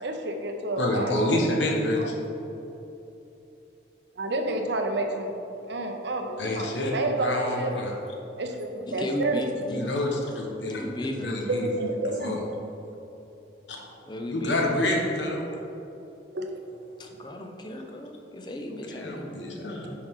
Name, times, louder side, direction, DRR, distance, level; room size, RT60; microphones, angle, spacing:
voice 1, 0.0-2.1 4.2-5.3 5.6-7.8 8.4-9.4 11.4-12.4 16.3-16.5, right 2 dB, 75° right, 4 dB, 0.8 m, -30 dB
voice 2, 0.8-2.1 6.4-7.9 9.7-10.8 11.2-11.7 12.2-12.4 13.7-13.8 14.3-15.5 18.9-19.9, left 1 dB, 80° left, 0 dB, 1.3 m, -28 dB
voice 3, 8.9-9.9 10.8-11.3 14.1-14.6 17.0-19.3, left 1 dB, 25° left, 3 dB, 0.6 m, -35 dB
10.0 x 4.9 x 3.7 m, 2.9 s
head